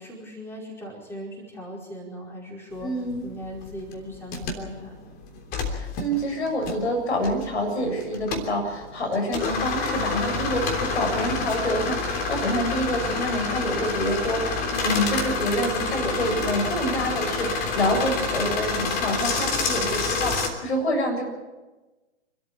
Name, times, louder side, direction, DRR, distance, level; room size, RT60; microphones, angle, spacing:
voice 1, 0.0-5.1, equal, 5° left, -2 dB, 5.0 m, -39 dB
voice 2, 2.8-3.3 5.6-21.2, equal, 65° left, 3 dB, 7.7 m, -27 dB
sound 1, 2.8-20.5, left 4 dB, 25° left, 3.3 m, -28 dB
27.5 x 13.5 x 8.6 m, 1.2 s
figure-of-eight pair, 120°, 35 cm